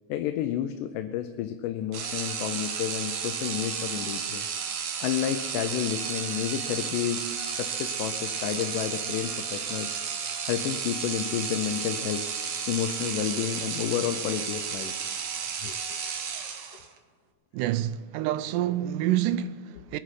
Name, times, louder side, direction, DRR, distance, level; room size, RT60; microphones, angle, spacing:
voice 1, 0.1-4.5 5.0-7.3 7.6-9.9 10.5-12.2 12.7-14.9 15.6-16.0, left 10 dB, 80° left, 2.2 m, -30 dB
sound 1, 1.9-17.0, right 6 dB, 60° right, 2.1 m, -33 dB
voice 2, 17.5-20.0, right 12 dB, 80° right, 2.0 m, -27 dB
22.5 x 9.9 x 4.9 m
omnidirectional pair, 3.8 m